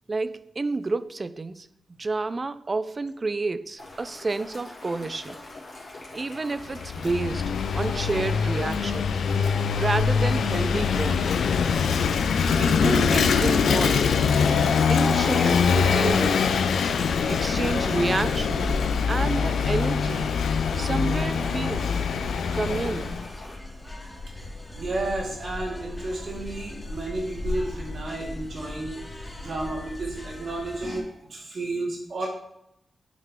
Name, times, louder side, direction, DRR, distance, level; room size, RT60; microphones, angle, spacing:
voice 1, 0.1-1.7 2.0-5.4 6.1-9.2 9.8-11.4 12.6-14.1 14.9-16.6 17.3-18.8 19.1-20.4 20.8-22.0 22.5-23.2, right 3 dB, 45° right, 0.4 m, -30 dB
sound 1, 3.8-23.6, left 2 dB, 65° left, 2.0 m, -43 dB
Vehicle / Engine, 6.6-23.3, left 6 dB, 85° left, 0.3 m, -23 dB
sound 2, 17.0-31.0, left 2 dB, 25° left, 1.8 m, -38 dB
voice 2, 24.7-32.3, right 2 dB, 70° right, 2.0 m, -32 dB
8.2 x 3.7 x 3.5 m
cardioid pair, 45°, 0 cm